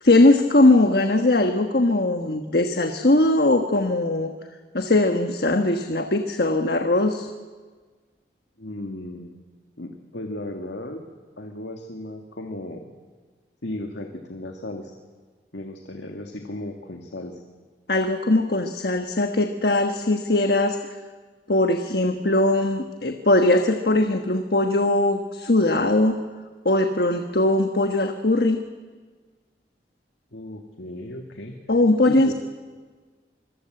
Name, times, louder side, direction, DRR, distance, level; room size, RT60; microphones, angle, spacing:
voice 1, 0.0-4.3 4.7-7.3 17.9-20.8 21.5-26.2 26.6-28.6 31.7-32.3, left 2 dB, 60° left, 6 dB, 1.3 m, -20 dB
voice 2, 8.6-9.4 9.8-11.0 11.4-12.9 13.6-14.9 15.5-17.4 30.3-31.6 32.0-32.3, left 1 dB, 85° left, 4 dB, 2.0 m, -35 dB
26.0 x 22.0 x 7.8 m, 1.4 s
head